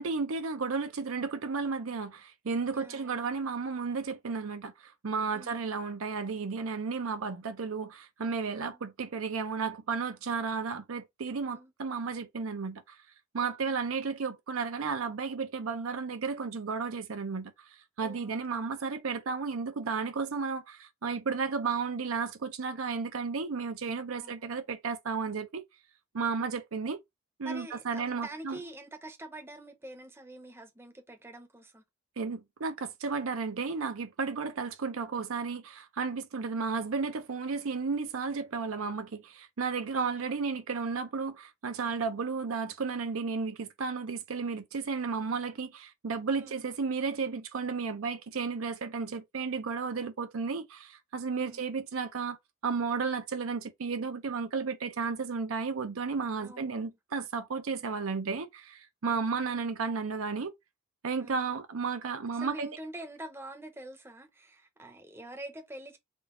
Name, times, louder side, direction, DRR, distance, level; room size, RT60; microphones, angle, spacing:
voice 1, 0.0-13.0 13.3-17.5 18.0-25.6 26.1-27.0 27.4-28.6 32.2-52.4 52.6-60.5 61.0-62.7, right 5 dB, 70° right, 0.6 m, -33 dB
voice 2, 2.7-3.4 5.3-5.6 8.5-8.8 11.5-11.7 13.4-13.8 18.0-18.6 24.1-24.5 27.4-31.8 39.9-40.4 46.4-46.8 51.3-51.6 56.4-57.0 61.2-61.5 62.3-66.0, right 1 dB, 10° right, 0.7 m, -46 dB
3.7 x 2.3 x 3.7 m
head